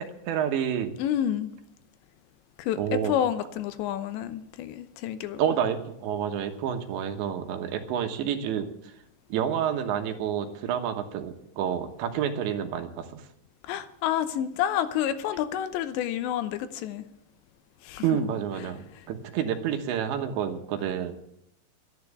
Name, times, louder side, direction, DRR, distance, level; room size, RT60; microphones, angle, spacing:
voice 1, 0.0-0.9 2.8-3.1 5.4-8.7 9.3-13.2 18.0-21.1, right 9 dB, 80° right, 3.4 m, -29 dB
voice 2, 1.0-1.5 2.6-5.4 13.7-17.0 17.8-18.2 18.6-18.7, left 10 dB, 80° left, 3.1 m, -29 dB
12.0 x 11.0 x 8.2 m
omnidirectional pair, 5.2 m